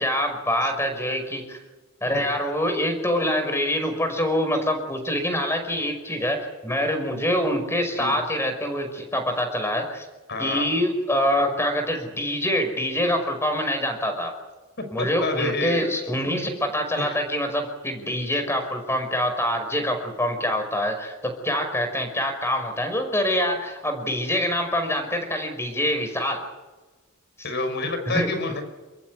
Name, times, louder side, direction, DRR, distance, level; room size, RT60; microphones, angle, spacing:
voice 1, 0.0-1.6 2.0-10.1 10.4-14.3 14.9-26.4 28.1-28.3, equal, 15° left, 6 dB, 5.4 m, -25 dB
voice 2, 10.3-10.7 15.0-15.9 17.0-17.2 27.4-28.6, left 2 dB, 55° left, 8 dB, 5.5 m, -28 dB
29.5 x 14.5 x 9.7 m, 1.2 s
head